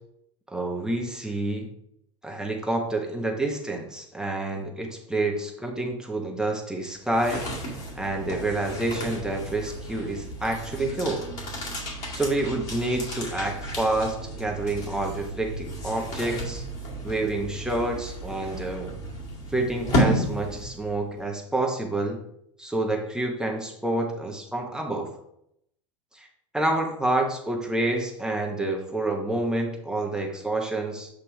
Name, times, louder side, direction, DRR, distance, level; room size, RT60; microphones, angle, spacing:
voice 1, 0.5-1.7 2.2-7.5 7.9-11.3 12.1-16.6 17.0-18.9 19.5-22.2 22.6-25.1 26.1-26.3 26.5-31.1, right 2 dB, 5° right, 1 dB, 0.9 m, -28 dB
sound 1, 6.9-21.0, equal, 45° left, 2.2 m, -32 dB
8.1 x 2.9 x 4.7 m, 0.75 s
figure-of-eight pair, 85°, 16 cm